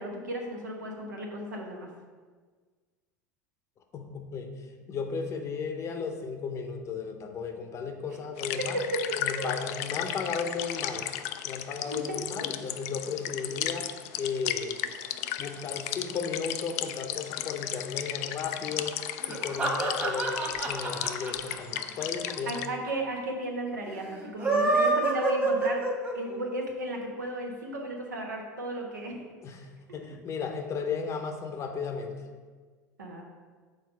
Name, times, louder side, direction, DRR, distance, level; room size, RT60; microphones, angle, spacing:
voice 1, 0.0-1.9 8.6-8.7 8.9-9.0 9.3-9.6 11.8-12.2 22.5-25.8 26.1-29.1 29.9-30.1 33.0-33.2, right 1 dB, 75° right, 1 dB, 1.1 m, -34 dB
voice 2, 3.9-4.5 4.9-8.8 9.2-11.1 11.4-14.8 15.4-19.0 19.3-22.6 29.4-32.2, left 5 dB, 30° left, 5 dB, 0.8 m, -35 dB
sound 1, 8.4-22.7, left 12 dB, 50° left, 0.4 m, -35 dB
sound 2, 19.2-22.6 22.9-23.0 23.2-23.3 24.2-26.4, right 3 dB, 20° right, 1.5 m, -27 dB
6.5 x 4.1 x 5.2 m, 1.5 s
figure-of-eight pair, 80°, 10 cm